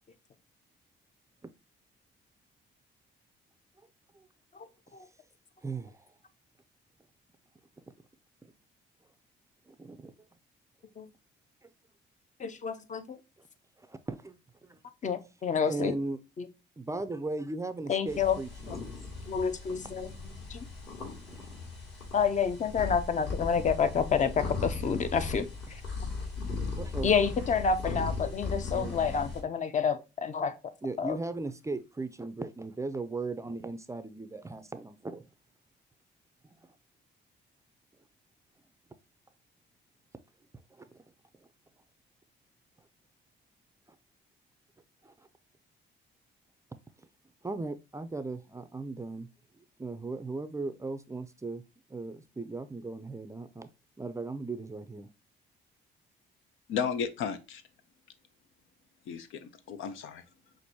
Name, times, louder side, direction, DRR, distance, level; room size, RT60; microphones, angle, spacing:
voice 1, 4.5-5.1 11.0-11.1 12.4-13.2 15.0-15.9 16.4-16.5 17.9-18.4 18.7-18.8 19.2-20.1 20.5-20.7 22.1-25.8 27.0-30.7 31.0-31.2, left 6 dB, 40° left, 0.6 m, -29 dB
voice 2, 5.6-6.0 8.4-8.5 9.7-10.1 11.6-11.7 13.9-14.8 15.7-16.2 16.8-19.0 21.3-21.4 26.8-27.1 28.7-29.0 30.8-35.2 40.7-40.9 45.0-45.1 47.4-49.3 49.6-51.6 51.9-53.7 54.0-55.1, right 3 dB, 15° right, 0.4 m, -37 dB
sound 1, 18.1-29.4, left 4 dB, 60° left, 2.6 m, -37 dB
voice 3, 56.7-57.6 59.0-60.3, left 7 dB, 80° left, 0.6 m, -34 dB
6.0 x 2.6 x 2.7 m
cardioid pair, 90°, 20 cm